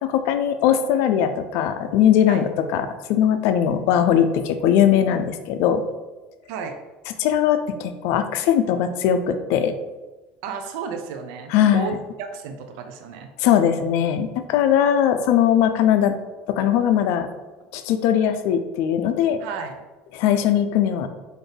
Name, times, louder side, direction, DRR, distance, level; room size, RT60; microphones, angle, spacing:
voice 1, 0.0-2.8 3.1-5.8 7.2-9.7 11.5-11.9 13.4-16.1 16.5-17.3 17.7-19.4 20.1-21.1, left 9 dB, 70° left, 9 dB, 0.4 m, -20 dB
voice 2, 10.4-13.3 19.4-19.8, right 5 dB, 75° right, 6 dB, 0.4 m, -32 dB
4.1 x 2.6 x 3.3 m, 1.2 s
supercardioid pair, 100°, 5 cm